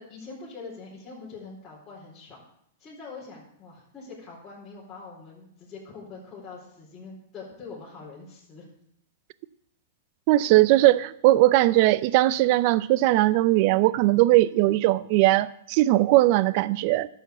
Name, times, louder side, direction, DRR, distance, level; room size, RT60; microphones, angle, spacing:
voice 1, 0.0-2.4 2.8-8.7, left 4 dB, 20° left, 4.1 m, -43 dB
voice 2, 10.3-17.1, right 16 dB, 50° right, 0.5 m, -19 dB
11.0 x 7.0 x 8.1 m
hypercardioid pair, 130°, 0 cm